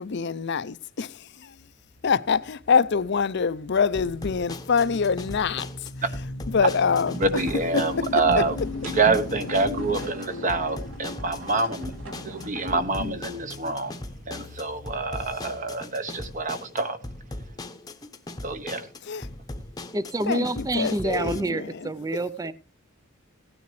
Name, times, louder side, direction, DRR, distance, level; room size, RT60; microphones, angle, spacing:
voice 1, 0.0-1.6 2.0-5.9 6.5-7.2 7.7-8.1 8.4-8.5 13.0-13.2 19.0-19.3 20.3-21.9, left 5 dB, 55° left, 0.5 m, -25 dB
sound 1, 1.6-15.7, left 2 dB, 80° left, 1.0 m, -39 dB
sound 2, 4.0-21.4, left 1 dB, 20° left, 0.9 m, -39 dB
sound 3, 6.8-13.3, equal, 70° right, 3.2 m, -40 dB
voice 2, 7.2-8.6 8.8-11.9 12.2-13.9 14.3-17.0 18.4-18.9, right 3 dB, 40° right, 1.1 m, -26 dB
voice 3, 19.9-22.5, right 2 dB, 15° right, 0.5 m, -27 dB
17.0 x 9.5 x 3.2 m
head